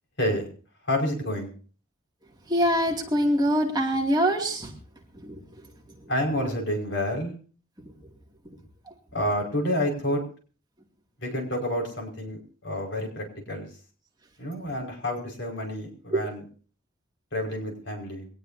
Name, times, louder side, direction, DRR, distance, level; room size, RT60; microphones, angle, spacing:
voice 1, 0.2-0.5 0.9-1.5 6.1-7.3 9.1-10.2 11.2-13.7 14.4-16.4 17.3-18.3, left 1 dB, 60° left, 1 dB, 5.4 m, -29 dB
voice 2, 2.5-4.7 5.2-5.4 16.1-16.2, equal, 20° right, 1 dB, 2.5 m, -24 dB
22.5 x 19.0 x 2.8 m, 0.40 s
head